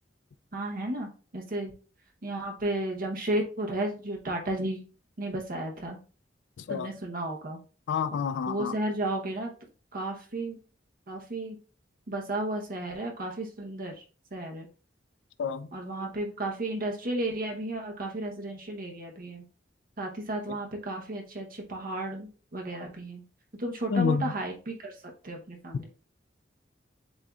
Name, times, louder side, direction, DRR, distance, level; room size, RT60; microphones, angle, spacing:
voice 1, 0.5-1.7 2.2-4.8 5.2-6.0 6.7-7.6 8.5-9.5 9.9-10.6 11.1-11.6 12.1-14.0 14.3-14.7 15.7-19.4 20.0-23.2 23.6-25.0 25.2-25.9, right 1 dB, 50° right, 0.9 m, -33 dB
voice 2, 6.6-6.9 7.9-8.7 15.4-15.7 23.9-24.2, left 5 dB, 85° left, 0.3 m, -28 dB
8.0 x 2.7 x 2.3 m
head